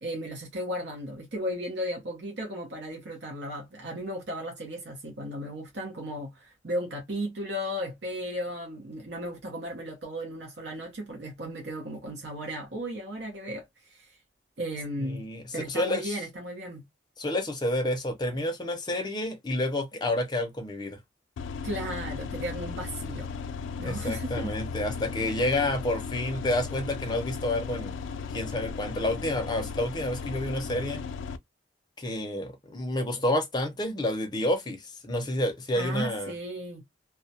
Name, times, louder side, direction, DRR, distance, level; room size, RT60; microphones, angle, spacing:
voice 1, 0.0-14.2 14.6-15.3 15.5-16.8 21.6-23.3 23.8-24.5 35.8-36.8, equal, 65° right, 0.8 m, -35 dB
voice 2, 15.0-16.1 17.2-21.0 23.8-27.9 28.3-31.0 32.0-36.3, left 1 dB, 25° left, 0.6 m, -29 dB
sound 1, 21.4-31.4, left 5 dB, 85° left, 0.3 m, -36 dB
2.3 x 2.1 x 2.6 m
head